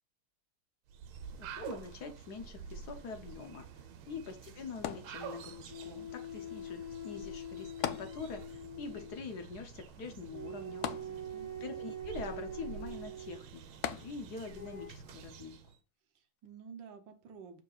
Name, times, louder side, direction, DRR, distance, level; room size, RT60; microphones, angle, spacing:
sound 1, 0.9-15.8, right 7 dB, 90° right, 1.6 m, -49 dB
voice 1, 1.4-3.6 4.1-10.9 11.6-15.6, left 4 dB, 60° left, 5 dB, 1.2 m, -44 dB
sound 2, 4.8-5.7 7.8-8.7 9.0-9.1 10.8-11.7 13.8-14.6 15.2-15.3, left 10 dB, 80° left, 0.8 m, -39 dB
sound 3, 5.7-9.2 10.3-13.4 14.5-14.9, right 1 dB, 25° left, 1.0 m, -44 dB
voice 2, 11.0-11.5 16.2-17.6, right 6 dB, 70° right, 7 dB, 1.6 m, -52 dB
6.7 x 6.5 x 2.4 m, 0.33 s
omnidirectional pair, 2.3 m